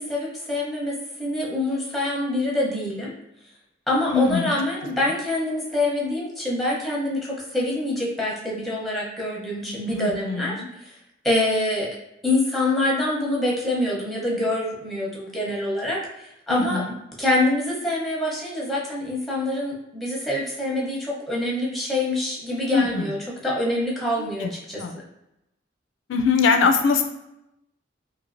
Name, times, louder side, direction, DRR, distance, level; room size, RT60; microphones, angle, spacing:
voice 1, 0.0-3.1 3.9-10.9 11.2-12.0 12.2-16.8 17.2-23.2 23.4-24.8, left 1 dB, ahead, -4 dB, 0.7 m, -25 dB
voice 2, 4.1-4.5 9.9-10.7 16.5-17.0 22.7-23.1 24.2-24.5 24.8-25.0 26.1-27.0, left 5 dB, 90° left, 5 dB, 0.4 m, -22 dB
3.0 x 2.6 x 2.5 m, 0.88 s
head